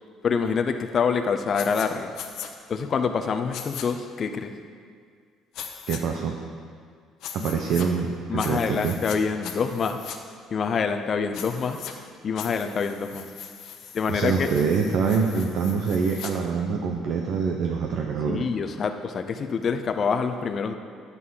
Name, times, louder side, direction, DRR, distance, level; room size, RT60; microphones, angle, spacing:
voice 1, 0.2-2.1 2.7-4.5 7.4-7.5 8.3-10.0 10.5-11.9 12.2-13.3 13.9-14.5 18.3-20.8, left 6 dB, 35° left, 7 dB, 0.6 m, -26 dB
sound 1, 1.5-1.9 2.1-2.5 3.5-3.9 5.5-6.0 7.2-7.9 8.4-9.2 9.4-10.2 11.3-11.9 12.4-16.3, left 9 dB, 60° left, 0.9 m, -39 dB
voice 2, 5.9-6.3 7.3-8.9 14.1-18.5, right 5 dB, 55° right, 1 dB, 0.8 m, -25 dB
11.0 x 8.2 x 5.6 m, 2.1 s
cardioid pair, 155°, 0 cm